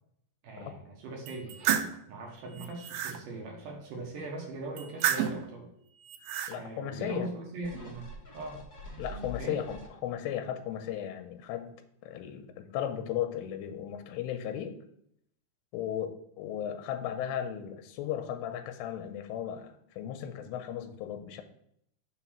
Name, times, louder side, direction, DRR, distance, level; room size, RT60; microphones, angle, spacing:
voice 1, 0.4-1.6 2.1-5.7 6.5-8.7 9.4-9.6, right 2 dB, 65° right, 0 dB, 2.3 m, -40 dB
sound 1, 1.3-2.0 2.5-3.2 4.8-5.5 6.0-6.5, right 9 dB, 90° right, 2.8 m, -30 dB
voice 2, 6.5-7.3 9.0-11.7 12.0-14.7 15.7-21.4, left 10 dB, 85° left, 8 dB, 2.7 m, -36 dB
sound 2, 7.6-10.3 10.8-10.9, left 2 dB, 40° left, 1.4 m, -44 dB
6.3 x 4.0 x 5.7 m, 0.73 s
omnidirectional pair, 5.0 m